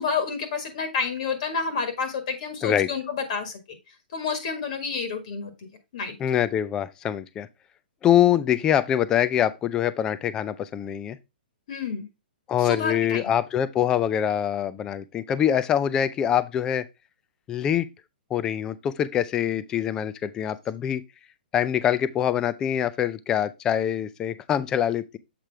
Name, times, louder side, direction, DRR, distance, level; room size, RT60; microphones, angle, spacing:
voice 1, 0.0-3.6 4.1-5.7 5.9-6.1 11.7-12.1 12.6-13.2, left 5 dB, 45° left, 1.7 m, -29 dB
voice 2, 6.2-7.5 8.0-11.2 12.5-16.8 17.5-17.9 18.3-21.0 21.5-25.2, left 10 dB, 10° left, 0.4 m, -24 dB
7.5 x 4.9 x 3.4 m
hypercardioid pair, 170°, 6 cm